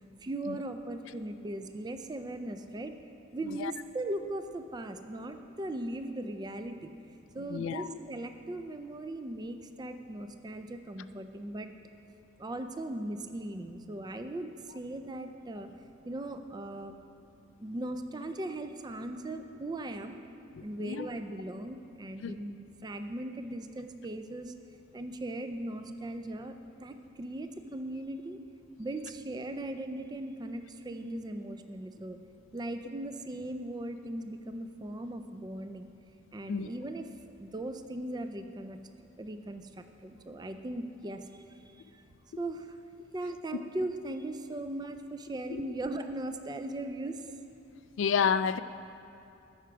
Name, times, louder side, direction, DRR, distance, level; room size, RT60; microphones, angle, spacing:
voice 1, 0.0-3.0 3.3-6.9 7.3-11.7 12.4-15.7 16.0-16.9 17.6-20.2 20.6-24.5 24.9-26.5 26.8-28.4 28.8-32.2 32.5-35.9 36.3-37.1 37.4-38.8 39.2-42.0 42.4-42.8 43.1-47.3, right 1 dB, 20° right, 0.4 m, -38 dB
voice 2, 7.5-8.0 20.5-21.1 22.2-22.4 36.5-36.7 45.5-45.6 48.0-48.6, left 7 dB, 65° left, 0.3 m, -30 dB
14.0 x 6.0 x 4.6 m
head